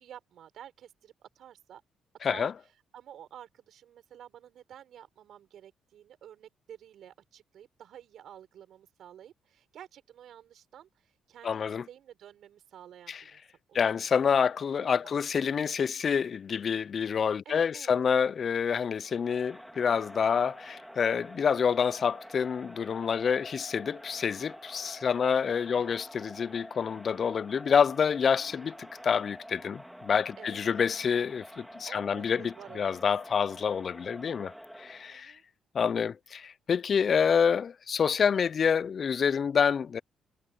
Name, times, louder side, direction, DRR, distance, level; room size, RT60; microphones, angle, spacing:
voice 1, 0.0-1.8 2.2-2.5 2.9-13.4 13.7-14.1 15.0-15.1 17.4-18.0 25.7-26.0 30.4-30.6 31.9-33.4 35.1-35.4, right 10 dB, 70° right, 6.0 m, -51 dB
voice 2, 2.2-2.5 11.4-11.8 13.1-13.2 13.7-34.5 34.8-35.4 35.7-40.0, left 7 dB, 50° left, 0.4 m, -27 dB
Crowd, 19.0-35.2, equal, ahead, 2.6 m, -48 dB
cardioid pair, 90°, 0 cm